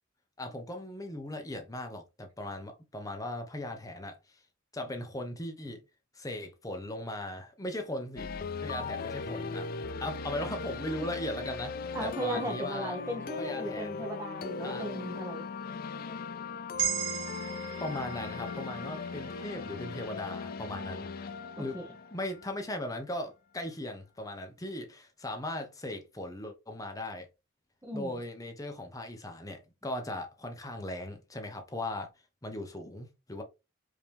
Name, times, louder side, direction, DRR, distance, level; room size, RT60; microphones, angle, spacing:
voice 1, 0.4-4.4 4.7-5.8 6.1-8.3 8.6-9.7 10.0-13.0 13.4-14.1 14.6-14.8 17.8-21.1 21.6-21.8 22.1-27.3 27.9-32.1 32.4-33.4, left 1 dB, 20° left, 0.9 m, -38 dB
sound 1, 8.2-23.0, left 4 dB, 50° left, 0.4 m, -38 dB
voice 2, 11.9-15.4 21.6-21.9 27.8-28.1, equal, 15° right, 0.9 m, -36 dB
sound 2, 16.8-21.0, right 9 dB, 60° right, 1.8 m, -38 dB
4.9 x 2.9 x 3.4 m
head